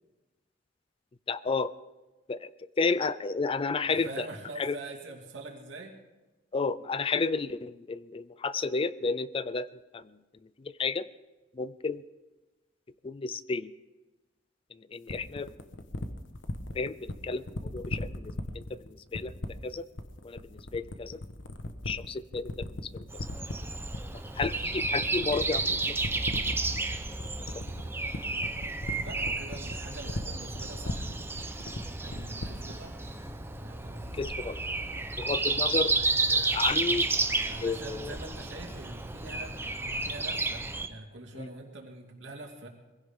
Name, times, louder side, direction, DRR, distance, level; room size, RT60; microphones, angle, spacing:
voice 1, 1.3-1.7 2.3-2.5 2.8-4.3 4.6-4.8 6.5-9.7 9.9-10.0 10.6-11.1 11.6-12.0 13.0-13.7 14.9-15.5 16.7-19.3 19.6-19.8 20.2-21.2 21.9-23.1 24.4-26.0 27.5-27.6 34.1-34.6 35.2-36.0 36.3-37.1 37.6-38.1 41.4-41.5, left 4 dB, 30° left, 16 dB, 0.4 m, -32 dB
voice 2, 3.8-5.9 29.0-31.1 32.0-33.0 33.6-34.2 37.4-39.6 39.9-42.7, right 2 dB, 75° right, 1 dB, 2.6 m, -44 dB
sound 1, 15.1-32.8, left 1 dB, 80° left, 1.2 m, -37 dB
Breathing, 23.1-40.9, right 3 dB, 15° right, 0.8 m, -32 dB
sound 2, 31.3-37.3, left 2 dB, 65° left, 5.9 m, -61 dB
22.5 x 16.0 x 3.7 m, 1.1 s
head